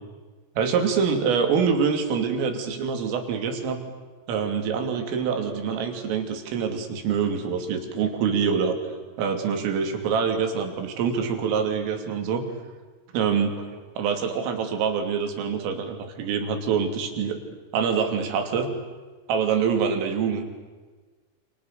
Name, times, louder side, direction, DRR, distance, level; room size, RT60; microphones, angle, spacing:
voice 1, 0.6-3.8 4.3-8.8 9.2-12.4 13.1-13.5 14.0-17.4 17.7-18.7 19.3-20.5, right 6 dB, 85° right, 5 dB, 5.5 m, -25 dB
29.5 x 28.5 x 6.8 m, 1.4 s
omnidirectional pair, 5.7 m